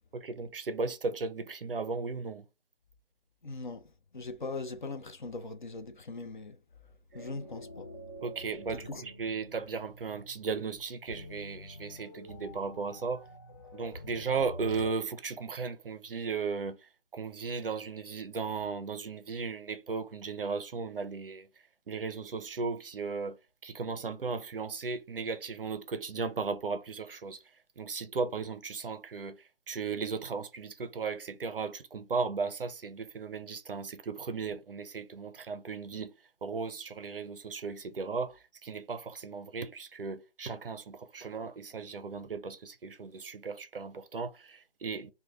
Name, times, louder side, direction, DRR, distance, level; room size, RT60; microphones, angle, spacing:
voice 1, 0.1-2.5 8.2-13.2 13.7-21.5 21.9-27.4 27.8-36.1 36.4-45.1, right 4 dB, 55° right, 0.5 m, -36 dB
voice 2, 3.4-6.6 7.1-7.9 8.9-9.0, left 3 dB, 45° left, 0.6 m, -40 dB
sound 1, 7.1-14.9, left 1 dB, 20° left, 0.8 m, -47 dB
3.1 x 2.2 x 3.4 m
figure-of-eight pair, 160°, 33 cm